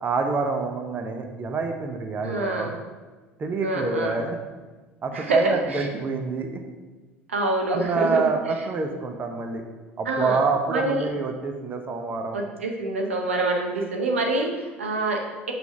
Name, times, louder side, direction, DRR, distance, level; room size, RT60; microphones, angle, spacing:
voice 1, 0.0-2.7 3.4-4.4 5.0-6.6 7.7-9.6 10.0-12.4, right 4 dB, 30° right, 4 dB, 0.7 m, -26 dB
voice 2, 2.2-2.7 3.6-4.2 5.1-5.8 7.3-8.3 10.0-10.4 10.7-11.0 12.3-15.5, right 2 dB, 80° right, 1 dB, 0.9 m, -26 dB
6.0 x 3.5 x 5.8 m, 1.3 s
figure-of-eight pair, 70°, 7 cm